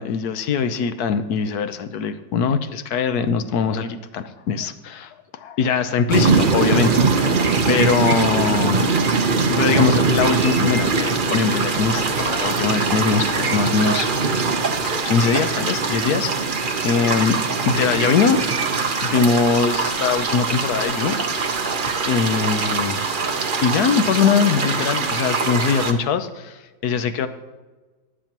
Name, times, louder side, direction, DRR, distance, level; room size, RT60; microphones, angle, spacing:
voice 1, 0.0-8.9 9.3-14.3 14.8-16.6 16.8-17.4 17.7-18.4 19.0-21.2 22.1-23.0 23.6-27.3, left 6 dB, 65° left, 10 dB, 1.1 m, -22 dB
sound 1, 6.1-25.9, right 4 dB, 50° right, 0.6 m, -22 dB
21.5 x 7.5 x 3.0 m, 1.2 s
omnidirectional pair, 2.0 m